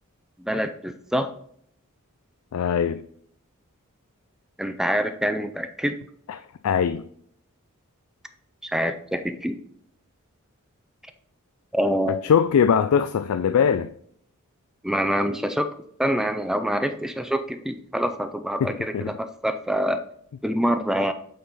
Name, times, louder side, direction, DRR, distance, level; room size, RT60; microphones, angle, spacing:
voice 1, 0.4-1.3 4.6-6.0 8.6-9.6 11.7-12.2 14.8-15.7 16.0-20.0 20.4-21.1, equal, ahead, 0.4 m, -25 dB
voice 2, 2.5-3.0 6.3-7.0 12.2-13.9 18.6-19.1, left 7 dB, 70° left, 0.3 m, -22 dB
8.6 x 3.8 x 4.0 m
head